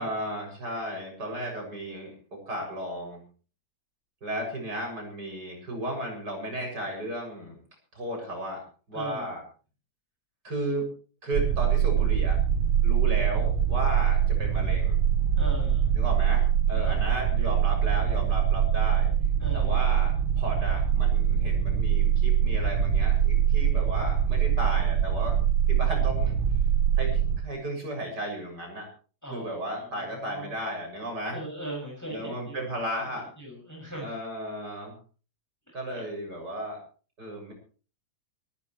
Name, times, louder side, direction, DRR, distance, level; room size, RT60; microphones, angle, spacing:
voice 1, 0.0-3.2 4.2-7.6 7.9-9.4 10.4-10.9 11.2-12.4 12.8-15.0 16.0-19.1 19.5-25.4 25.7-26.3 27.0-28.9 29.3-31.4 32.1-33.3 34.0-35.0 35.7-36.8 37.2-37.5, right 1 dB, 55° right, 2 dB, 7.8 m, -34 dB
voice 2, 8.9-9.3 15.4-15.9 16.8-17.0 19.4-19.8 29.2-30.5 31.3-32.7 33.2-34.1 35.9-36.1, right 1 dB, 10° left, -2 dB, 6.5 m, -39 dB
sound 1, 11.3-27.4, right 9 dB, 90° right, 2.0 m, -23 dB
25.5 x 14.5 x 3.2 m, 0.40 s
omnidirectional pair, 2.2 m